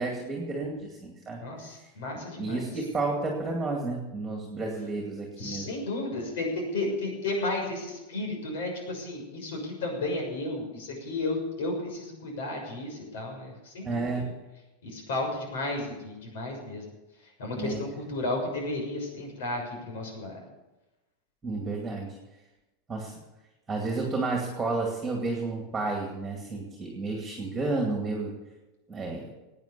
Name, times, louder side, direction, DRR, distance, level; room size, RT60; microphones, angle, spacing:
voice 1, 0.0-1.4 2.4-5.7 13.8-14.4 17.6-17.8 21.4-22.1 22.9-23.1 23.7-28.3 28.9-29.3, right 3 dB, 10° right, 0 dB, 2.3 m, -31 dB
voice 2, 1.4-2.7 5.4-14.1 14.8-16.9 17.4-20.4, left 2 dB, 85° left, 2 dB, 6.5 m, -33 dB
17.5 x 9.2 x 6.9 m, 1.0 s
supercardioid pair, 170°, 0 cm